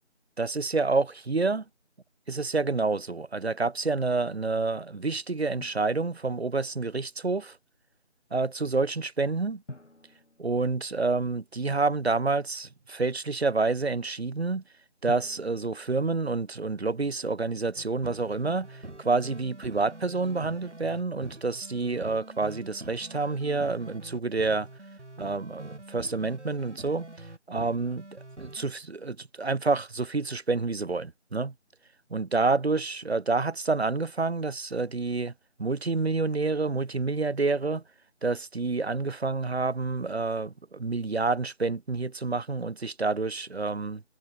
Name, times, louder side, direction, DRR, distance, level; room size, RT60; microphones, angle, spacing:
voice 1, 0.4-1.6 2.3-7.6 8.3-9.6 10.4-14.6 15.0-24.7 25.2-27.1 27.5-31.5 32.1-35.3 35.6-37.8 38.2-44.0, right 3 dB, 60° right, 0.9 m, -28 dB
Drum, 5.6-6.7 9.7-11.5 15.1-17.1, left 1 dB, 80° left, 5.4 m, -48 dB
sound 1, 17.8-28.6, right 2 dB, 80° right, 4.4 m, -45 dB
figure-of-eight pair, 175°, 35 cm